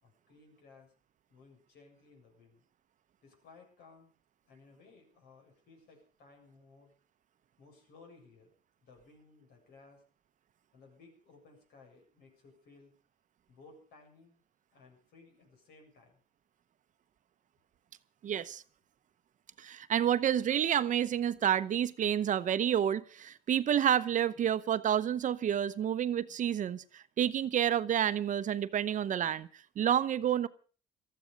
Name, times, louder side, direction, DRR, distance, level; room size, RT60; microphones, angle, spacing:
voice 1, 0.0-0.9 1.3-2.6 3.2-4.1 4.5-6.9 7.6-8.5 8.8-10.0 10.7-12.9 13.5-14.4 14.7-16.2, left 3 dB, 75° left, 3 dB, 7.3 m, -59 dB
voice 2, 18.2-18.6 19.6-29.5 29.8-30.5, right 10 dB, 50° right, 14 dB, 0.9 m, -29 dB
18.5 x 14.0 x 5.2 m, 0.40 s
cardioid pair, 110°, 17 cm